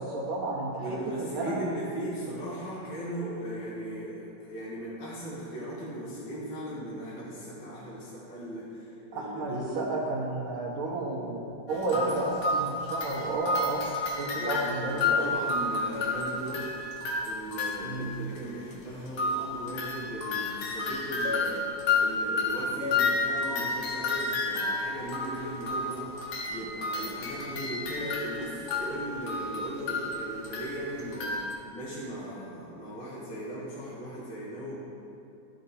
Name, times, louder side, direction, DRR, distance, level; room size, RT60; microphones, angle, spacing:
voice 1, 0.0-1.6 9.1-15.3 17.8-18.3, right 2 dB, 75° right, -7 dB, 1.8 m, -32 dB
voice 2, 0.8-9.9 11.7-12.2 14.3-16.9 17.2-21.7 21.9-31.4 31.7-34.7, right 1 dB, 60° left, -7 dB, 2.0 m, -38 dB
sound 1, 11.7-18.1 18.4-18.5 18.7-18.8 19.1-31.5, left 3 dB, 90° left, 2.0 m, -31 dB
13.0 x 4.4 x 4.1 m, 2.8 s
omnidirectional pair, 2.4 m